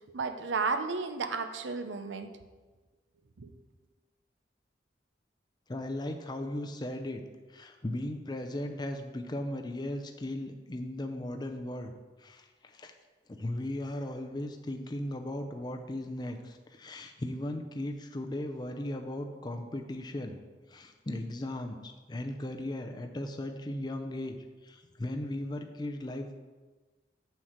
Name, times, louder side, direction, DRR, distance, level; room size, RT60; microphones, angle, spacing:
voice 1, 0.1-2.3 3.4-3.5, right 4 dB, 85° right, 9 dB, 0.7 m, -33 dB
voice 2, 5.7-7.2 7.5-11.9 12.2-12.9 13.3-20.4 20.7-24.3 24.6-26.3, left 1 dB, 25° left, 5 dB, 0.5 m, -37 dB
7.4 x 4.5 x 6.5 m, 1.3 s
head